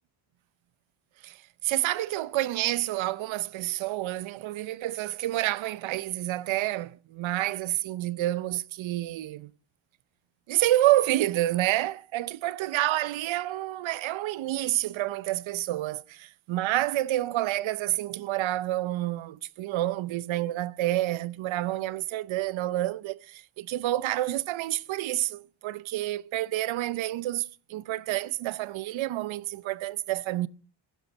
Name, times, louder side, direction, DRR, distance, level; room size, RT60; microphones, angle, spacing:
voice 1, 1.6-9.5 10.5-30.5, right 15 dB, 70° right, 0.7 m, -29 dB
15.5 x 12.5 x 5.3 m
cardioid pair, 170°, 48 cm